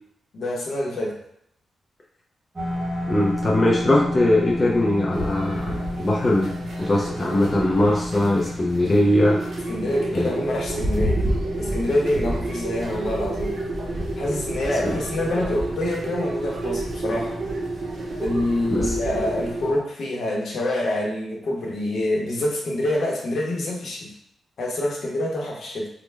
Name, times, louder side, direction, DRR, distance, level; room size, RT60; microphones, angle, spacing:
voice 1, 0.3-1.2 9.7-11.2 11.6-13.6 14.2-17.4 18.2-24.1 24.6-25.9, left 1 dB, 60° left, -2 dB, 0.7 m, -26 dB
sound 1, 2.6-19.8, left 1 dB, 20° right, 0.8 m, -34 dB
voice 2, 3.1-6.5 6.8-9.4 10.1-10.3 14.8-15.0 18.7-19.0, left 1 dB, 20° left, -4 dB, 0.4 m, -21 dB
sound 2, 5.1-19.7, right 2 dB, 50° right, 0.6 m, -30 dB
3.2 x 2.1 x 3.2 m, 0.72 s
wide cardioid pair, 155°, 0 cm